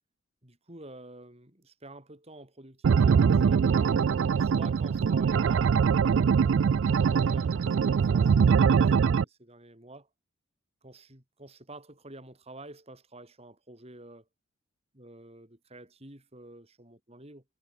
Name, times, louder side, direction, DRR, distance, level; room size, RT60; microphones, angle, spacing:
voice 1, 0.4-3.8 4.3-5.7 6.3-10.1 10.8-14.3 14.9-17.4, right 2 dB, 30° right, 4.7 m, -49 dB
sound 1, 2.8-9.2, right 6 dB, 65° right, 0.3 m, -23 dB
head